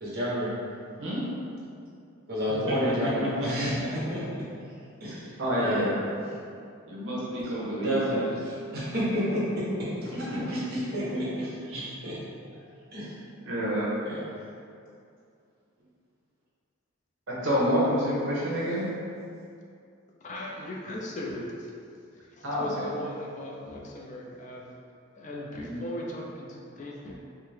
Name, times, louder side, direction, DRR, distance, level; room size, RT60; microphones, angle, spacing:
voice 1, 0.0-0.5 2.3-4.2 5.0-6.3 7.8-12.2 12.9-13.1 14.0-14.3, equal, 45° right, -8 dB, 1.2 m, -30 dB
voice 2, 5.4-6.0 6.9-8.0 10.5-10.6 11.1-11.2 11.7-11.8 13.4-13.9 17.3-18.9 22.4-22.9 25.6-25.8, equal, 65° right, -7 dB, 0.9 m, -28 dB
voice 3, 20.2-21.7 22.1-24.7 25.2-27.2, left 1 dB, 35° left, -2 dB, 0.3 m, -38 dB
4.5 x 2.1 x 3.2 m, 2.4 s
head